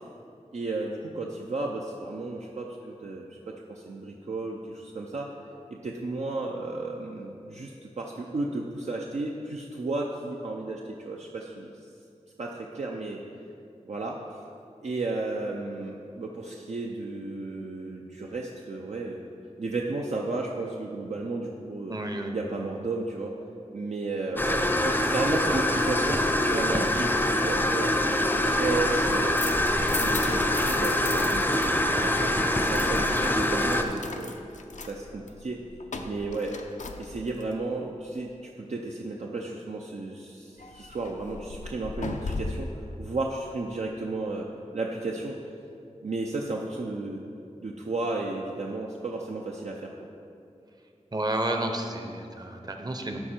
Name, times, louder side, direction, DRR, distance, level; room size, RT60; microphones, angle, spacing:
voice 1, 0.5-5.3 5.8-11.7 12.4-13.2 13.8-14.2 14.8-19.3 19.6-22.0 22.3-23.3 23.7-27.9 28.2-29.4 30.0-34.3 34.8-35.6 36.0-36.6 37.0-42.7 43.0-44.5 44.7-45.4 46.0-47.2 47.6-49.9, right 3 dB, 70° right, -1 dB, 0.6 m, -33 dB
voice 2, 21.9-22.4 51.1-53.3, right 1 dB, 35° right, 4 dB, 0.8 m, -31 dB
sound 1, 24.4-33.8, left 1 dB, 15° left, 0.6 m, -24 dB
sound 2, 29.1-31.7 31.9-37.5 40.6-42.8, left 4 dB, 90° left, 0.5 m, -38 dB
12.5 x 4.5 x 4.4 m, 2.6 s
wide cardioid pair, 85°, 12 cm